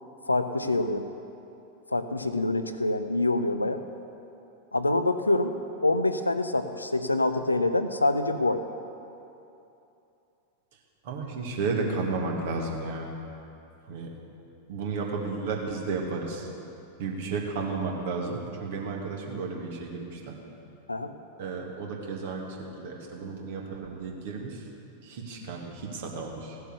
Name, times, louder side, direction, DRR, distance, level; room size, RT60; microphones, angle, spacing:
voice 1, 0.3-1.1 1.9-3.8 4.7-5.5 5.8-8.6 20.9-21.1, left 2 dB, 80° left, 9 dB, 0.6 m, -26 dB
voice 2, 11.0-13.1 13.9-14.1 14.7-16.5 17.0-20.4 21.4-24.6 25.0-26.6, right 4 dB, 55° right, 0 dB, 2.0 m, -33 dB
16.0 x 7.9 x 6.7 m, 2.8 s
figure-of-eight pair, 90°, 0 cm